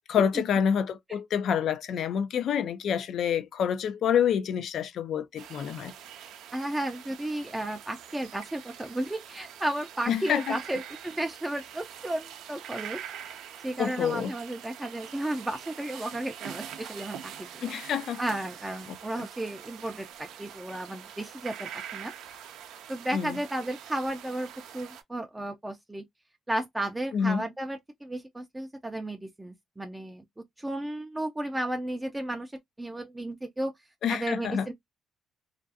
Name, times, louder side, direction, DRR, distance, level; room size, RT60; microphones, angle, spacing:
voice 1, 0.1-5.9 10.1-10.6 13.8-14.3 17.6-18.2 18.9-19.2 23.1-23.4 27.1-27.4 34.0-34.7, left 8 dB, 70° left, 0.4 m, -27 dB
sound 1, 5.4-25.0, right 9 dB, 85° right, 0.4 m, -44 dB
voice 2, 6.5-17.7 18.2-22.1 22.9-26.0 26.5-30.2 30.6-32.5 32.8-33.7 34.1-34.7, right 1 dB, 10° right, 0.4 m, -33 dB
2.4 x 2.2 x 2.6 m
cardioid pair, 90°, 0 cm